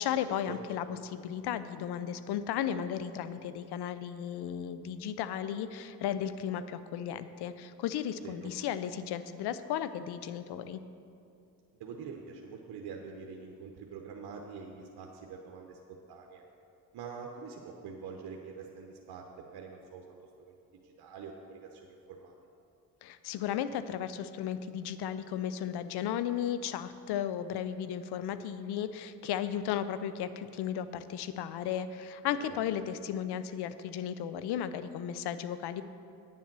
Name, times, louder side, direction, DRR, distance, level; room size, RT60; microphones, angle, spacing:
voice 1, 0.0-10.8 23.0-35.8, left 9 dB, 80° left, 13 dB, 0.6 m, -35 dB
voice 2, 8.2-8.5 11.7-16.4 16.9-20.5 20.8-22.4 32.4-32.6, right 5 dB, 75° right, 1 dB, 0.9 m, -45 dB
9.2 x 7.3 x 6.0 m, 2.6 s
supercardioid pair, 60°, 39 cm